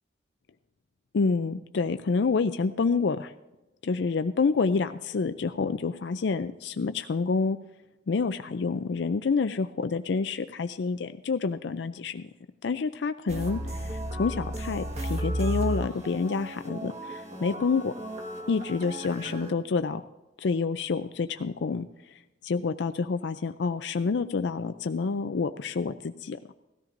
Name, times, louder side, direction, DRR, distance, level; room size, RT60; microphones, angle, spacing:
voice 1, 1.1-3.3 3.8-7.6 8.1-12.3 12.6-13.6 14.1-17.9 18.5-20.0 20.4-21.9 22.4-26.4, left 4 dB, 65° left, 10 dB, 0.4 m, -28 dB
sound 1, 13.3-19.5, right 1 dB, 35° right, 1.4 m, -34 dB
17.5 x 13.5 x 2.6 m, 0.97 s
head